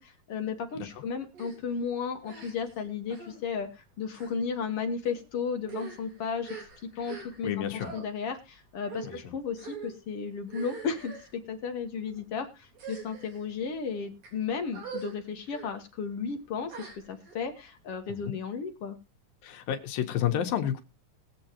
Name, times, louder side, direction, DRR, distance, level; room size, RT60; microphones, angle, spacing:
voice 1, 0.0-6.6 7.0-19.0, left 5 dB, 60° left, 6 dB, 1.6 m, -34 dB
sound 1, 1.3-1.6 2.2-2.8 3.1-3.4 4.1-4.3 5.0-5.2 5.6-7.5 7.8-8.0 8.8-9.2 9.6-9.9 10.5-11.3 12.0-12.2 12.7-13.4 14.0-14.3 14.7-15.1 15.5-15.7 16.7-17.3, right 5 dB, 75° right, 5.3 m, -43 dB
voice 2, 7.1-7.9 9.0-9.2 18.1-18.3 19.4-20.8, left 10 dB, 85° left, 6 dB, 2.9 m, -31 dB
20.5 x 7.9 x 2.9 m, 0.28 s
omnidirectional pair, 4.0 m